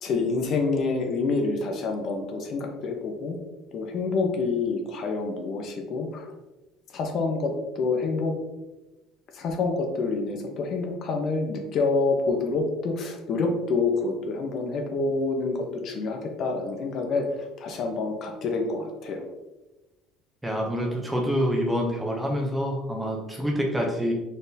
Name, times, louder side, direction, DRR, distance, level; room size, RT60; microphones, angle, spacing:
voice 1, 0.0-3.4 3.7-6.3 6.9-8.3 9.3-17.3 17.6-19.2, left 3 dB, 40° left, 3 dB, 0.6 m, -27 dB
voice 2, 20.4-24.1, equal, 5° right, 0 dB, 0.5 m, -26 dB
4.1 x 3.6 x 2.6 m, 1.0 s
cardioid pair, 165°, 0 cm